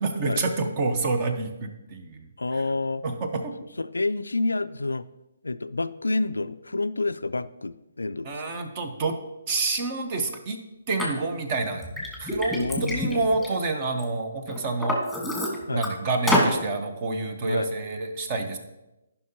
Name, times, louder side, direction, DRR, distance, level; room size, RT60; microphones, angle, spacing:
voice 1, 0.0-2.3 2.5-2.6 3.0-3.5 8.2-9.2 9.5-10.6 10.9-11.9 12.2-15.3 15.7-18.6, right 3 dB, 35° right, 6 dB, 1.1 m, -28 dB
voice 2, 2.4-3.0 3.8-5.0 5.4-8.4 12.5-13.3 15.7-15.8 17.4-17.7, left 3 dB, 80° left, 13 dB, 0.3 m, -28 dB
Liquid, 11.0-11.1 11.6-14.0 14.5-15.9 16.3-16.6, left 1 dB, ahead, 1.8 m, -27 dB
14.5 x 5.7 x 3.0 m, 0.97 s
figure-of-eight pair, 135°, 0 cm